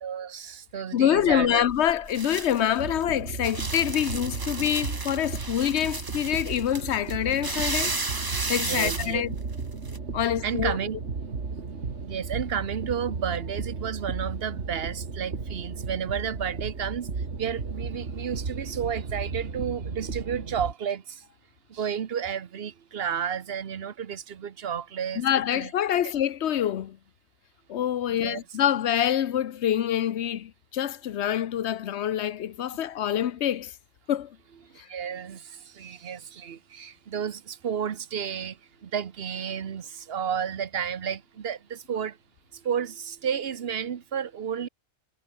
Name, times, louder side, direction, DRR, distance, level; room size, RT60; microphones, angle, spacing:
voice 1, 0.0-1.6 8.5-9.2 10.2-11.0 12.0-21.2 21.7-25.2 25.5-25.7 28.1-28.4 34.6-42.2 42.5-44.7, right 8 dB, 60° right, 1.1 m, -32 dB
voice 2, 0.9-8.0 8.5-9.3 10.1-10.8 25.2-27.0 27.7-33.7 34.1-34.4 34.8-34.9, left 10 dB, 70° left, 1.0 m, -26 dB
sound 1, 1.2-10.0, right 3 dB, 20° right, 0.9 m, -34 dB
Windy Dramatic Drone Cinematic Atmo, 2.8-20.7, right 4 dB, 75° right, 2.4 m, -35 dB
omnidirectional pair, 1.2 m